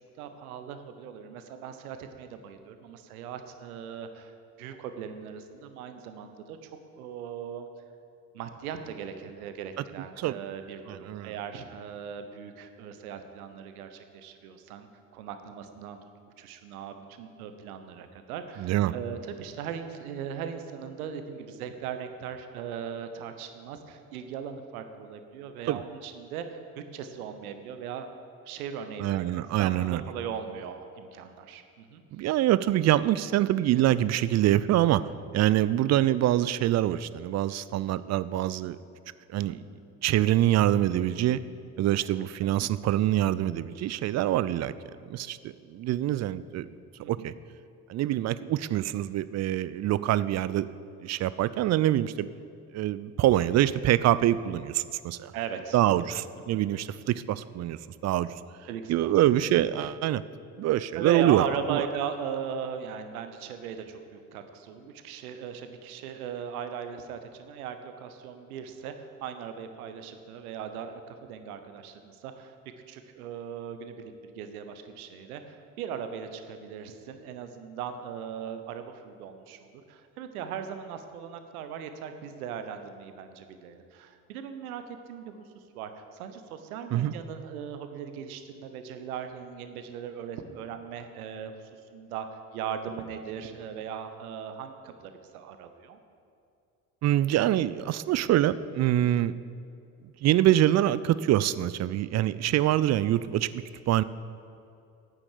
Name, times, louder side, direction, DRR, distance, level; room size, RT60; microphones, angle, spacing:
voice 1, 0.2-4.3 4.6-6.7 7.0-7.7 8.3-14.9 15.1-16.0 16.4-26.6 26.9-28.1 28.4-29.3 29.6-32.0 39.3-39.6 42.4-42.5 47.0-47.3 55.3-55.8 56.5-56.6 57.1-57.2 58.7-59.1 60.9-72.6 72.9-84.8 85.1-85.4 85.7-91.5 91.9-96.0, right 8 dB, 75° right, 8 dB, 1.1 m, -38 dB
voice 2, 10.9-11.3 18.6-18.9 25.7-25.8 29.0-30.0 32.1-35.0 35.3-38.8 39.3-39.6 40.0-41.4 41.8-44.7 45.1-45.4 45.7-46.7 47.1-47.3 47.9-50.7 51.0-52.3 52.7-55.3 55.7-58.3 58.9-60.2 60.6-61.4 61.7-61.8 86.9-87.1 97.0-99.3 100.2-104.0, right 13 dB, 40° right, 16 dB, 0.5 m, -25 dB
9.4 x 8.9 x 6.7 m, 2.5 s
figure-of-eight pair, 55°, 44 cm